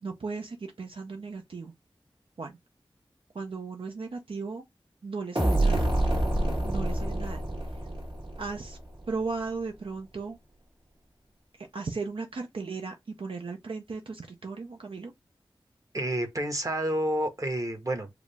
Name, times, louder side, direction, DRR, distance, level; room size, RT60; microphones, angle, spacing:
voice 1, 0.0-1.7 2.4-2.6 3.3-4.6 5.0-5.9 6.7-7.4 7.7-7.8 8.4-8.8 9.1-10.4 11.6-15.1, right 4 dB, 70° right, 0.5 m, -36 dB
sound 1, 5.4-9.0, right 1 dB, 55° right, 1.8 m, -27 dB
voice 2, 15.9-18.1, right 1 dB, 35° right, 1.2 m, -29 dB
4.9 x 2.0 x 3.3 m
wide cardioid pair, 50°, 9 cm